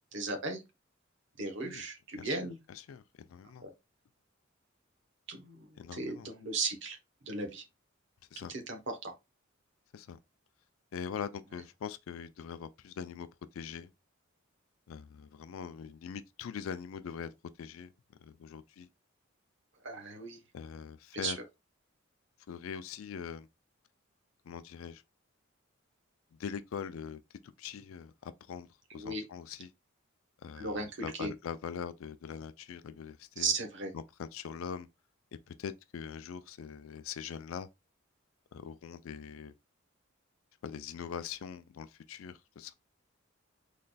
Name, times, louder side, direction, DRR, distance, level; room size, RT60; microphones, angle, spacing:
voice 1, 0.1-0.6 1.4-2.6 3.6-3.7 5.3-7.0 7.2-7.6 8.4-9.1 19.8-20.4 21.1-21.3 28.9-29.2 30.6-31.3 33.4-33.9, right 3 dB, 60° right, 0.9 m, -36 dB
voice 2, 2.1-3.0 3.3-3.7 5.8-6.3 8.3-8.5 9.9-10.2 10.9-13.3 13.5-13.9 14.9-17.3 17.6-17.9 18.2-18.9 20.5-21.4 22.5-23.5 24.5-25.0 26.3-29.7 30.4-33.5 33.9-34.9 35.5-37.7 38.5-39.5 40.6-42.7, left 7 dB, 85° left, 0.4 m, -42 dB
3.9 x 3.1 x 2.3 m
head